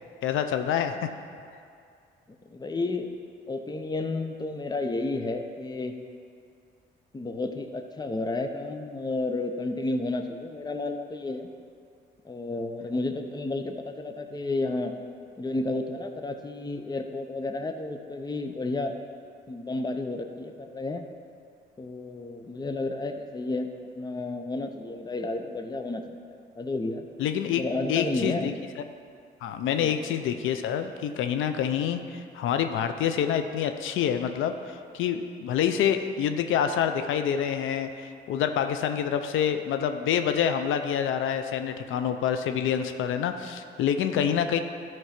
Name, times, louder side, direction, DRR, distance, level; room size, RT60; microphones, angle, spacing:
voice 1, 0.2-1.0 27.2-28.5 29.4-44.6, left 8 dB, 80° left, 8 dB, 0.6 m, -27 dB
voice 2, 2.5-3.1 3.5-5.9 7.1-11.5 12.2-14.9 15.4-18.9 19.5-21.1 21.8-23.7 23.9-26.0 26.3-27.1 27.5-28.5 29.8-29.9, left 2 dB, 20° left, 6 dB, 0.8 m, -31 dB
13.0 x 4.6 x 5.9 m, 2.3 s
cardioid pair, 90°, 20 cm